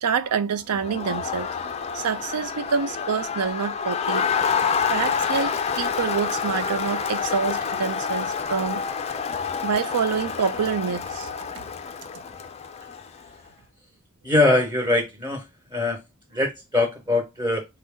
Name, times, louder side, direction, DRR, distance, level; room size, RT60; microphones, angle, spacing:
voice 1, 0.0-4.3 4.9-8.8 9.6-11.5, right 6 dB, 90° right, 0.5 m, -27 dB
Crowd, 0.7-13.2, left 6 dB, 30° left, 0.3 m, -28 dB
voice 2, 14.2-16.0 16.3-17.7, left 2 dB, 20° right, 1.0 m, -22 dB
4.0 x 2.1 x 3.6 m
head